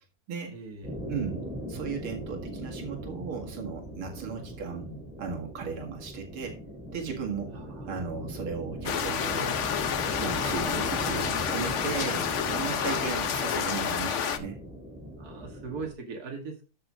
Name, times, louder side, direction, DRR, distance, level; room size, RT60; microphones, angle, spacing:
voice 1, 0.5-1.0 4.4-5.1 7.5-7.9 12.3-13.1 15.2-16.6, right 4 dB, 45° right, 2 dB, 2.7 m, -41 dB
sound 1, 0.8-15.9, equal, ahead, 5.0 m, -39 dB
voice 2, 1.1-1.4 1.7-4.9 5.2-6.6 6.9-7.6 7.8-9.6 10.2-14.6, right 6 dB, 90° right, 1 dB, 2.8 m, -36 dB
sound 2, 8.8-14.4, left 8 dB, 70° left, 0.7 m, -29 dB
13.0 x 6.7 x 3.8 m, 0.33 s
omnidirectional pair, 2.3 m